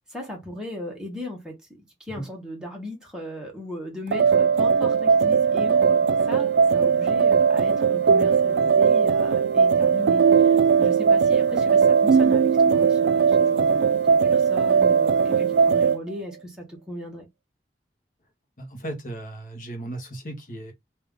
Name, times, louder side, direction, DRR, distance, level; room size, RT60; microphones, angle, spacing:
voice 1, 0.1-1.6 2.0-17.2, left 1 dB, 5° right, 1.4 m, -37 dB
sound 1, 4.1-16.0, right 6 dB, 75° right, 0.3 m, -19 dB
voice 2, 18.6-20.7, right 1 dB, 50° left, 1.2 m, -36 dB
3.3 x 2.7 x 3.7 m
head